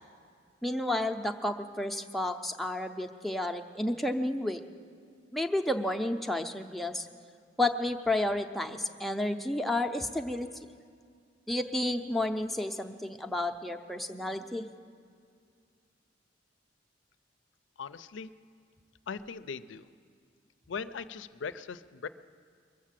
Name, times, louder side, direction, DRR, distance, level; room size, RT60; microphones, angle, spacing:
voice 1, 0.6-4.6 5.3-7.1 7.6-10.5 11.5-14.7, left 1 dB, ahead, 4 dB, 0.5 m, -31 dB
voice 2, 17.8-18.3 19.1-19.9 20.7-22.1, left 5 dB, 80° left, 14 dB, 0.5 m, -39 dB
22.0 x 7.4 x 7.5 m, 2.2 s
head